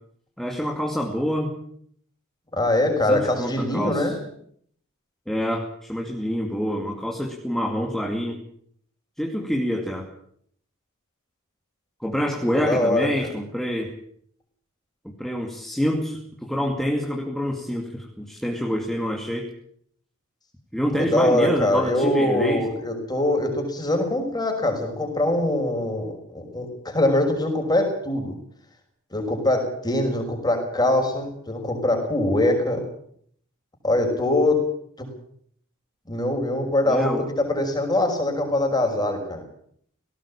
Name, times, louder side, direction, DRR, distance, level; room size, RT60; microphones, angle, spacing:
voice 1, 0.4-1.5 3.1-4.1 5.3-8.4 9.2-10.1 12.0-13.9 15.2-19.5 20.7-22.7 36.9-37.2, equal, ahead, 0 dB, 2.5 m, -27 dB
voice 2, 2.5-4.2 12.6-13.1 20.9-28.3 29.1-32.8 33.8-34.6 36.1-39.4, left 1 dB, 20° left, 4 dB, 5.8 m, -23 dB
18.5 x 18.0 x 8.7 m, 0.65 s
head